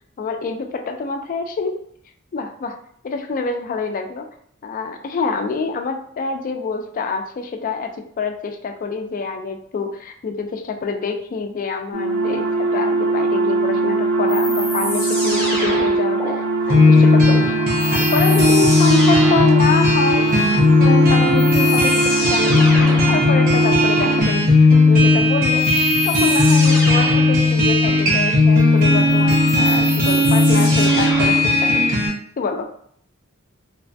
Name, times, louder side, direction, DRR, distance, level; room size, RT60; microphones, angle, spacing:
voice 1, 0.2-1.8 2.3-2.8 3.0-4.3 4.6-17.5 17.9-20.3 20.8-22.7 23.1-25.7 26.1-32.0 32.4-32.7, left 4 dB, 40° left, 5 dB, 0.3 m, -26 dB
sound 1, 11.9-24.2, right 3 dB, 80° right, 0.6 m, -22 dB
sound 2, 14.3-16.3 17.8-19.6 20.9-21.0 21.4-23.2 25.6-27.4 29.1-31.5, left 1 dB, 10° left, 0.7 m, -27 dB
sound 3, 16.7-32.1, left 2 dB, 45° right, 0.8 m, -15 dB
3.2 x 2.2 x 2.6 m, 0.65 s
head